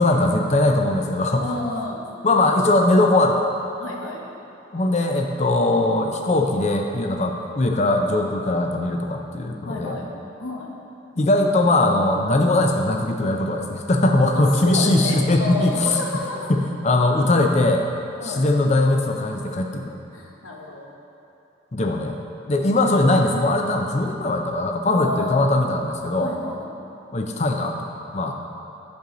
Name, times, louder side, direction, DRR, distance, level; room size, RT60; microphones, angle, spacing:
voice 1, 0.0-1.6 2.2-3.5 4.7-10.0 11.2-16.0 16.5-17.8 18.2-20.0 21.7-22.2 22.5-26.3 27.1-28.3, left 2 dB, 35° left, 3 dB, 0.5 m, -20 dB
voice 2, 1.3-2.0 3.8-4.2 9.7-10.1 10.4-10.7 14.3-16.5 18.2-18.4 20.1-20.9 22.6-22.8 24.8-25.5 26.2-26.7, left 2 dB, 85° left, -1 dB, 1.0 m, -30 dB
8.4 x 6.3 x 3.8 m, 2.9 s
head